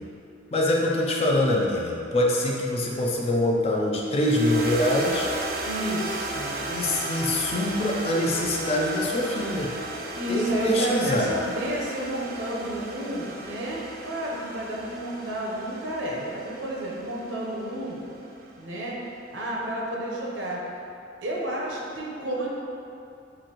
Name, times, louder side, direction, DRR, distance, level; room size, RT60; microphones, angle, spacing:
voice 1, 0.5-5.3 6.6-9.7 10.3-11.3, left 1 dB, 35° left, -2 dB, 0.5 m, -24 dB
sound 1, 4.1-18.5, right 2 dB, 50° right, 0.4 m, -35 dB
voice 2, 5.6-6.5 10.1-18.0 18.6-19.0 19.3-20.6 21.2-22.5, right 1 dB, 75° right, -3 dB, 0.8 m, -31 dB
6.2 x 2.5 x 2.9 m, 2.6 s
head